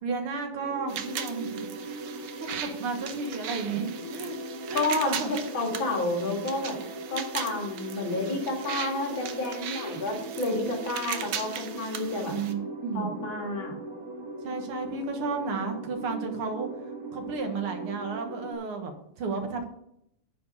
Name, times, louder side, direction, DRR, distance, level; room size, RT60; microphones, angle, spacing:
voice 1, 0.0-2.0 2.4-4.4 4.7-5.3 12.3-13.1 14.4-16.7 17.1-19.7, right 4 dB, 80° right, 4 dB, 2.3 m, -33 dB
sound 1, 0.5-18.5, right 1 dB, 35° right, 1.9 m, -39 dB
sound 2, 0.9-12.5, right 8 dB, 65° right, 1.3 m, -38 dB
voice 2, 4.7-6.8 7.1-12.3 12.9-13.7, left 2 dB, 65° left, 0 dB, 3.2 m, -30 dB
10.0 x 4.7 x 6.7 m, 0.75 s
omnidirectional pair, 2.4 m